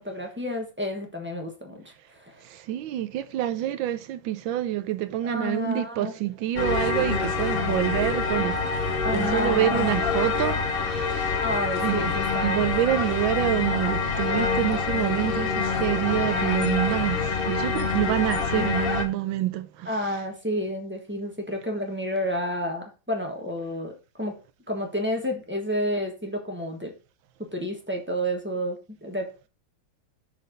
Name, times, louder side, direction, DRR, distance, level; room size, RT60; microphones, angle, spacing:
voice 1, 0.0-1.8 2.1-2.4 5.2-6.1 9.0-9.9 11.4-13.1 18.5-18.7 19.8-24.3 24.7-26.9 27.5-29.5, equal, 5° right, 1.0 m, -30 dB
voice 2, 2.5-10.6 10.8-11.4 11.8-12.1 12.4-20.2, right 13 dB, 80° right, 1.3 m, -27 dB
sound 1, 6.6-19.1, left 4 dB, 45° left, 0.7 m, -26 dB
6.5 x 4.2 x 5.1 m
omnidirectional pair, 2.2 m